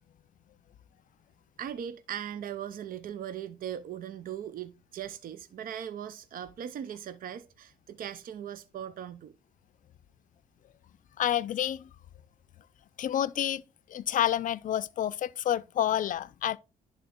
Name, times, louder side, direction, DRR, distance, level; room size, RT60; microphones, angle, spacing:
voice 1, 1.6-9.4, right 9 dB, 60° right, 0.6 m, -39 dB
voice 2, 11.2-11.9 13.0-13.6 13.9-16.6, left 11 dB, 55° left, 0.4 m, -29 dB
11.0 x 3.7 x 3.6 m
cardioid pair, 100°, 16 cm